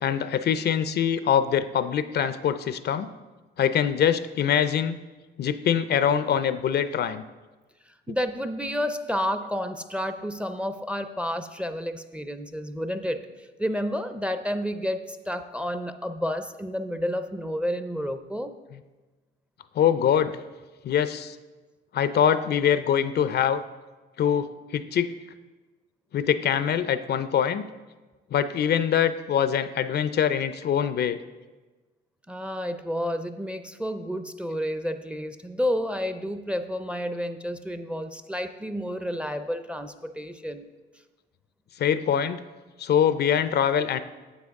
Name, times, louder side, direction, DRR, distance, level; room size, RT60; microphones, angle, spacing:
voice 1, 0.0-3.1 3.6-5.0 5.4-7.2 19.8-20.3 20.8-21.4 21.9-23.6 24.2-25.1 26.1-27.6 28.3-31.2 41.8-42.4 42.8-44.0, left 8 dB, 55° left, 13 dB, 0.4 m, -23 dB
voice 2, 8.1-18.5 32.3-40.6, equal, 5° right, 9 dB, 0.5 m, -30 dB
9.6 x 7.4 x 3.6 m, 1.2 s
cardioid pair, 90°, 20 cm